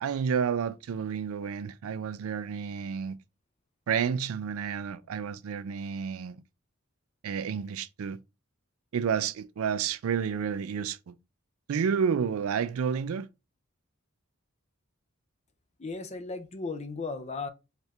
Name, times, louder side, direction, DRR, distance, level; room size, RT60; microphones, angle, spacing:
voice 1, 0.0-3.2 3.9-6.4 7.2-8.2 8.9-11.1 11.7-13.3, right 7 dB, 80° right, 0.4 m, -30 dB
voice 2, 15.8-17.5, left 3 dB, 30° left, 0.5 m, -36 dB
4.3 x 2.5 x 3.2 m
head